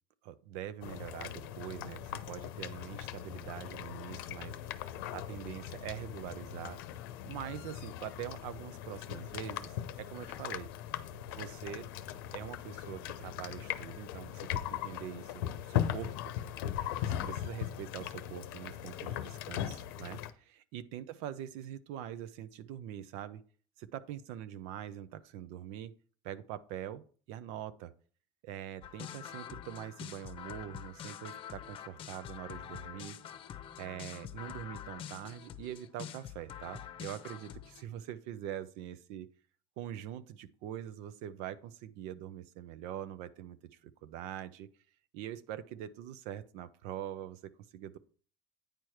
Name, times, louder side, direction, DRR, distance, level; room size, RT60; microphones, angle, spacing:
voice 1, 0.2-4.6 5.1-6.8 7.2-10.7 11.3-11.8 12.3-16.1 17.0-23.4 23.8-25.9 26.2-27.9 28.4-33.2 33.8-39.3 39.8-44.7 45.1-48.0, right 11 dB, 75° right, 14 dB, 0.7 m, -44 dB
sound 1, 0.8-20.3, left 11 dB, 85° left, 0.7 m, -39 dB
sound 2, 28.8-37.8, left 9 dB, 50° left, 0.8 m, -46 dB
9.2 x 4.8 x 4.5 m, 0.42 s
supercardioid pair, 90°, 12 cm